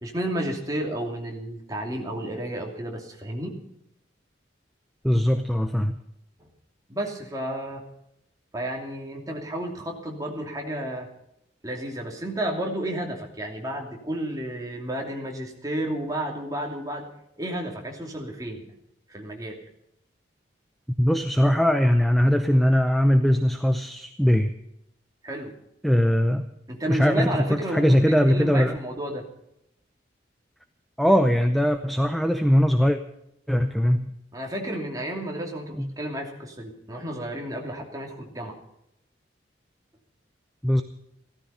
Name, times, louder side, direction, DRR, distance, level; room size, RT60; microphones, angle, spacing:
voice 1, 0.0-3.6 6.9-7.8 8.5-11.1 11.6-17.1 17.4-18.6 19.1-19.6 25.2-25.6 26.7-29.2 34.3-38.6, right 1 dB, 20° right, 0 dB, 2.7 m, -32 dB
voice 2, 5.0-5.9 21.0-24.5 25.8-26.5 26.9-28.8 31.0-33.0 33.5-34.1 35.8-35.9 40.6-40.8, equal, ahead, 8 dB, 0.6 m, -21 dB
16.0 x 13.5 x 5.6 m, 0.81 s
head